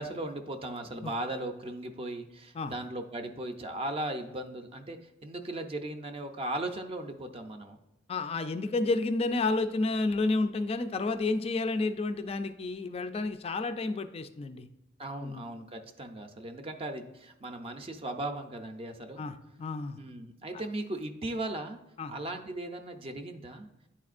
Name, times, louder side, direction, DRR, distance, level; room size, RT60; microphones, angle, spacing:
voice 1, 0.0-7.8 15.0-19.3 20.0-21.8 22.1-23.7, right 1 dB, 30° right, 6 dB, 0.5 m, -37 dB
voice 2, 8.1-14.7 15.2-15.4 19.2-20.0 22.0-22.2, left 3 dB, 30° left, 8 dB, 0.3 m, -30 dB
9.9 x 4.3 x 2.4 m, 0.97 s
head